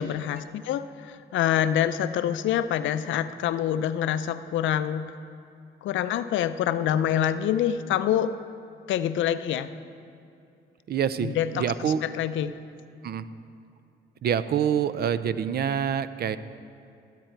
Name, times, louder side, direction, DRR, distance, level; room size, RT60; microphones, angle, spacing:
voice 1, 0.0-5.1 5.8-8.4 8.9-9.7 11.2-12.6, left 10 dB, 75° left, 12 dB, 0.5 m, -26 dB
voice 2, 10.9-12.0 13.0-13.2 14.2-16.4, right 8 dB, 55° right, 14 dB, 0.5 m, -26 dB
12.5 x 8.9 x 4.5 m, 2.6 s
cardioid pair, 90°, 20 cm